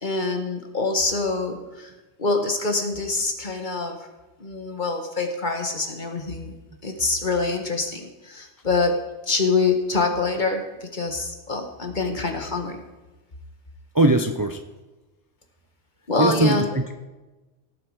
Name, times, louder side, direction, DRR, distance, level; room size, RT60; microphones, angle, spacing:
voice 1, 0.0-1.9 2.2-4.0 4.4-6.5 6.8-9.0 9.3-10.6 10.9-12.8 16.1-16.7, left 3 dB, 45° left, 5 dB, 1.7 m, -25 dB
voice 2, 13.9-14.6 16.2-16.9, right 2 dB, 20° right, 6 dB, 0.6 m, -20 dB
18.0 x 8.0 x 4.8 m, 1.1 s
omnidirectional pair, 1.1 m